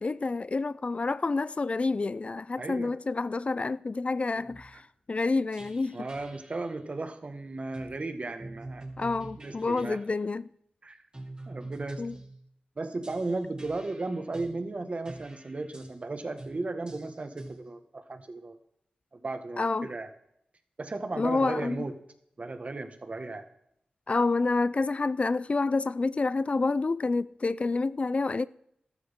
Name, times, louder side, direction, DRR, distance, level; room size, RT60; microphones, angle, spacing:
voice 1, 0.0-6.1 9.0-10.4 12.0-12.1 19.6-19.9 21.2-21.8 24.1-28.4, left 3 dB, 45° left, 0.4 m, -28 dB
voice 2, 2.6-2.9 5.9-8.9 9.4-10.0 10.8-11.0 11.5-12.0 12.8-18.6 19.1-20.1 20.8-22.0 22.4-23.4, right 2 dB, 50° right, 1.6 m, -35 dB
sound 1, 4.3-4.8 5.5-6.7 7.7-8.0 8.4-10.0 11.1-12.4 13.0-14.6 15.1-16.0 16.4-16.6 16.9-17.6, right 2 dB, 30° right, 2.9 m, -45 dB
14.0 x 12.5 x 3.7 m
cardioid pair, 45°, 3 cm